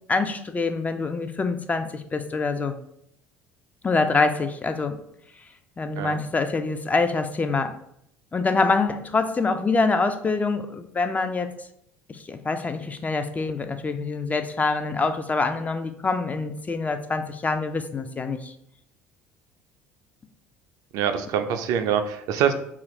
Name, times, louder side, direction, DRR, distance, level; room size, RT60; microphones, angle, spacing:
voice 1, 0.1-2.8 3.8-5.0 5.8-7.7 8.3-11.5 12.3-18.5, left 3 dB, 20° left, 8 dB, 0.3 m, -25 dB
voice 2, 20.9-22.5, right 8 dB, 60° right, 7 dB, 0.3 m, -24 dB
2.7 x 2.4 x 3.1 m, 0.73 s
hypercardioid pair, 65°, 7 cm